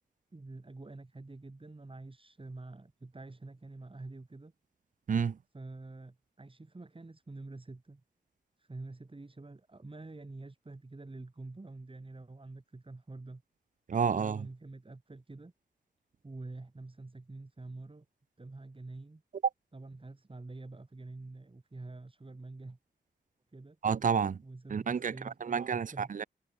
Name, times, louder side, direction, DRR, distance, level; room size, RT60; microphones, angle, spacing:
voice 1, 0.3-4.5 5.5-8.0 8.6-13.4 14.1-15.5 16.2-18.1 18.4-19.2 19.7-22.8 23.5-23.8 24.4-26.1, right 2 dB, 30° right, 6.4 m, -47 dB
voice 2, 5.1-5.4 13.9-14.5 23.8-24.4 24.7-26.2, right 6 dB, 45° right, 0.5 m, -30 dB
cardioid pair, 75°, 18 cm